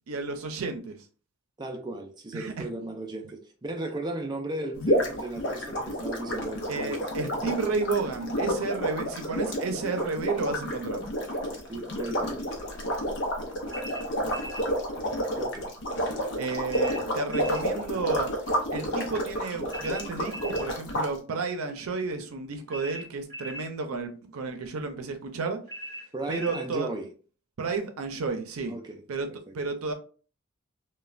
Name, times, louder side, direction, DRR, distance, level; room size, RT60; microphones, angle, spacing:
voice 1, 0.1-1.0 2.3-2.7 6.7-11.1 16.4-18.3 18.7-25.6 26.3-26.9 27.6-28.8 29.1-29.3 29.5-29.9, right 4 dB, 90° right, 0.5 m, -32 dB
voice 2, 1.6-6.9 11.7-12.5 15.3-16.1 16.3-16.6 26.1-27.1 28.7-29.0 29.3-29.5, right 1 dB, 20° right, 0.4 m, -36 dB
sound 1, 4.8-21.1, equal, 60° left, 0.6 m, -30 dB
sound 2, 13.7-14.7 16.7-17.7 19.7-20.7 22.7-23.7 25.7-26.7, equal, 20° left, 1.5 m, -40 dB
3.1 x 2.2 x 2.4 m
head